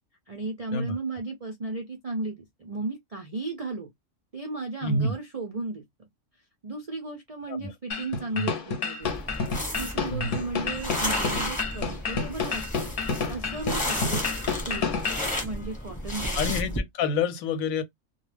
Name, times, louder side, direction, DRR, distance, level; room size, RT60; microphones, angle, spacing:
voice 1, 0.3-3.9 4.3-5.8 6.6-9.1 9.8-12.9 13.3-14.4 14.6-15.1 15.4-16.6, right 3 dB, 60° right, 0.3 m, -35 dB
voice 2, 4.8-5.1 7.5-7.7 8.3-8.5 10.1-10.4 16.3-17.8, left 3 dB, 85° left, 1.0 m, -28 dB
sound 1, 7.9-15.3, left 5 dB, 50° left, 0.7 m, -30 dB
sound 2, 9.0-16.8, left 1 dB, 5° left, 0.8 m, -32 dB
2.3 x 2.2 x 3.2 m
omnidirectional pair, 1.4 m